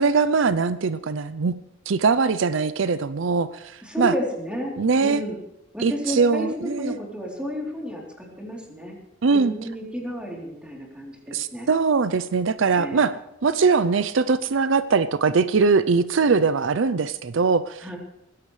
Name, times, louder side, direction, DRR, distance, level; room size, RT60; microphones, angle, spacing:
voice 1, 0.0-1.6 1.9-4.1 4.8-5.2 5.8-7.0 9.2-9.5 11.3-13.2 13.4-17.9, right 4 dB, 75° right, 14 dB, 0.5 m, -21 dB
voice 2, 3.8-4.7 5.0-5.4 5.7-9.0 9.3-11.7 12.7-13.1 17.8-18.0, equal, 5° right, -2 dB, 3.4 m, -32 dB
20.5 x 15.5 x 3.3 m, 0.86 s
head